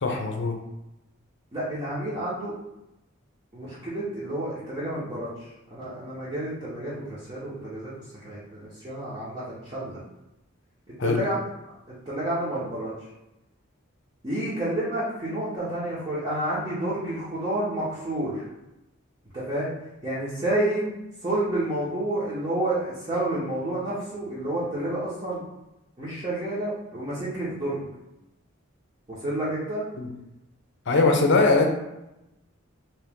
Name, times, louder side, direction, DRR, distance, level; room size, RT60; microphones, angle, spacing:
voice 1, 0.0-0.6 11.0-11.2 30.0-30.1 30.9-31.7, left 3 dB, 60° left, 3 dB, 0.6 m, -21 dB
voice 2, 1.5-2.5 3.5-10.0 11.0-11.5 11.9-12.9 14.2-18.5 19.3-19.7 20.0-20.9 21.2-25.4 26.0-27.9 29.1-29.9, right 1 dB, 25° right, -10 dB, 0.9 m, -30 dB
3.0 x 2.9 x 3.5 m, 0.93 s
head